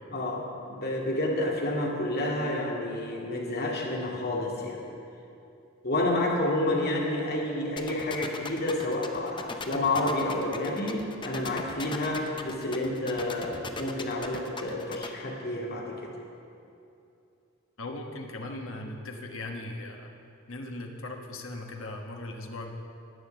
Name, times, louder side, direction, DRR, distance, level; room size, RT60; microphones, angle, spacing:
voice 1, 0.1-4.8 5.8-16.1, left 1 dB, 50° left, -2 dB, 2.2 m, -29 dB
sound 1, 7.8-15.1, left 4 dB, 25° left, 0.7 m, -38 dB
voice 2, 17.8-20.1 20.5-22.7, left 2 dB, 70° left, 2 dB, 1.2 m, -38 dB
11.0 x 9.5 x 6.8 m, 2.7 s
head